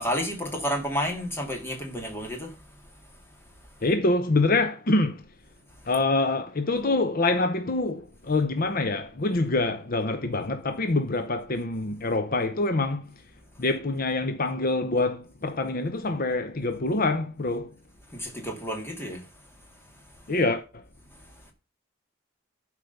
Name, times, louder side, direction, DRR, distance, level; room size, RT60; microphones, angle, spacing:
voice 1, 0.0-2.5 18.1-19.2, equal, 10° left, 2.3 m, -30 dB
voice 2, 3.8-5.2 5.9-13.1 13.6-17.7 20.3-20.8, left 2 dB, 45° left, 0.7 m, -25 dB
11.5 x 5.0 x 6.7 m
head